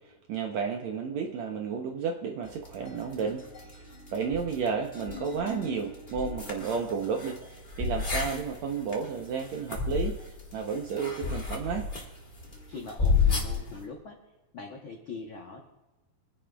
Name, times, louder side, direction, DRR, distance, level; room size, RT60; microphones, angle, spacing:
voice 1, 0.3-3.4 4.1-10.1 10.5-11.8, right 6 dB, 70° right, 2 dB, 1.7 m, -32 dB
sound 1, 2.5-13.8, left 5 dB, 55° left, 0.5 m, -33 dB
voice 2, 12.7-14.2 14.5-15.6, left 4 dB, 80° left, 0 dB, 1.1 m, -42 dB
27.5 x 10.0 x 2.3 m, 1.1 s
omnidirectional pair, 4.0 m